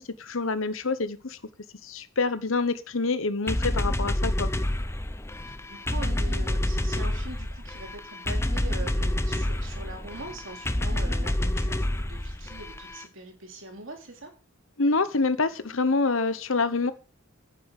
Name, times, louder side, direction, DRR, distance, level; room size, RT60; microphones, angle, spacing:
voice 1, 0.0-1.4 1.8-4.5 14.8-16.9, left 3 dB, 65° left, 13 dB, 1.0 m, -26 dB
sound 1, 3.5-13.0, left 1 dB, 10° left, 0.7 m, -28 dB
voice 2, 5.7-14.3, right 2 dB, 60° right, 3 dB, 3.2 m, -42 dB
9.8 x 7.0 x 6.6 m, 0.36 s
head